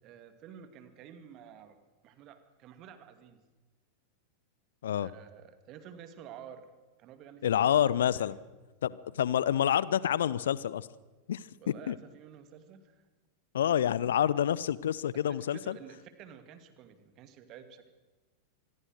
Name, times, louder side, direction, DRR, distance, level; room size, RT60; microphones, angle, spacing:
voice 1, 0.0-3.4 5.0-6.7 7.0-7.8 8.1-8.3 11.6-13.0 15.3-17.9, right 8 dB, 35° right, 10 dB, 2.3 m, -51 dB
voice 2, 7.4-8.4 8.8-10.9 11.3-11.4 11.9-12.0 13.5-15.8, left 10 dB, 60° left, 20 dB, 0.8 m, -28 dB
26.0 x 21.0 x 6.5 m, 1.2 s
figure-of-eight pair, 90°, 0 cm